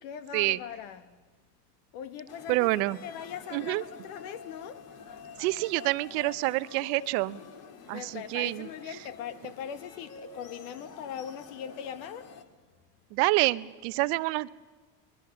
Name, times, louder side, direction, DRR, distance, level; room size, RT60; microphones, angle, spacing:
voice 1, 0.0-1.2 1.9-4.8 7.9-12.3, left 8 dB, 70° left, 1.7 m, -40 dB
sound 1, 2.3-12.4, left 5 dB, 50° left, 2.3 m, -48 dB
voice 2, 2.5-3.0 3.5-3.8 5.4-7.4 7.9-8.7 13.1-14.5, right 21 dB, 65° right, 0.8 m, -27 dB
24.0 x 20.5 x 6.8 m
hypercardioid pair, 85°, 47 cm